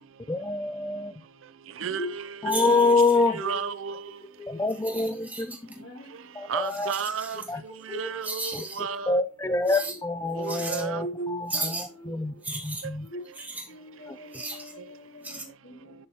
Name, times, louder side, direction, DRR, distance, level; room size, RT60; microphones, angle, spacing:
voice 1, 0.3-1.1 2.4-3.4 4.5-5.7 6.3-6.9 7.5-7.6 8.5-8.6 9.1-12.3 12.6-13.1 14.1-14.4, left 3 dB, 15° left, 0.4 m, -26 dB
voice 2, 1.8-2.2 3.3-4.0 6.5-7.4 7.9-9.2 10.4-11.0, right 6 dB, 80° right, 0.5 m, -32 dB
voice 3, 2.4-2.8 3.4-3.6 4.4-4.8 5.8-6.1 7.7-8.2 9.4-9.7 11.0-12.3 13.0-13.2 13.7-15.9, equal, 65° left, 2.5 m, -39 dB
sound 1, 2.5-3.3 4.7-5.7 6.6-7.5 8.2-8.8 9.7-10.0 10.4-10.9 11.5-11.9 12.4-13.7 14.3-14.7 15.2-15.4, right 2 dB, 10° right, 1.5 m, -35 dB
11.0 x 6.3 x 2.9 m
head